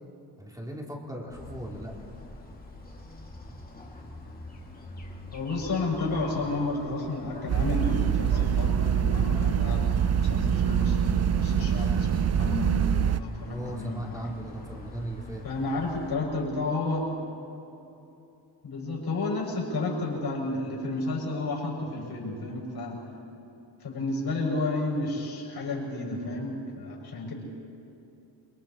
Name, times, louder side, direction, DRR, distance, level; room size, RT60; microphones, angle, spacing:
voice 1, 0.4-1.9 13.4-15.4, right 1 dB, 10° right, -1 dB, 2.8 m, -37 dB
sound 1, 1.3-16.1, left 2 dB, 20° left, 2.2 m, -44 dB
voice 2, 5.3-14.3 15.4-17.2 18.6-23.0 23.8-27.3, left 2 dB, 60° left, -3 dB, 6.4 m, -31 dB
sound 2, 7.5-13.2, right 8 dB, 40° right, 0.4 m, -25 dB
29.0 x 23.5 x 4.3 m, 2.9 s
wide cardioid pair, 150°, 43 cm